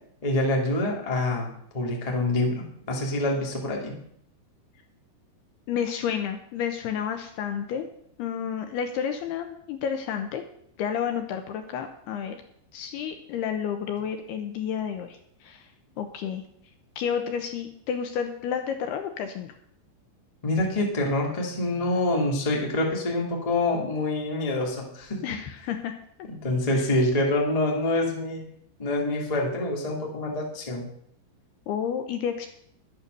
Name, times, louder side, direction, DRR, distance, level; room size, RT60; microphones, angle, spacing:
voice 1, 0.2-3.9 20.4-25.4 26.3-28.4 28.8-30.9, left 2 dB, 15° left, 0 dB, 1.2 m, -26 dB
voice 2, 5.7-7.9 8.2-10.4 10.8-12.4 12.7-15.7 16.0-16.4 17.0-19.5 25.2-25.9 26.7-26.9 31.7-32.5, left 8 dB, 75° left, 6 dB, 2.6 m, -30 dB
11.5 x 9.0 x 6.7 m, 0.69 s
omnidirectional pair, 5.2 m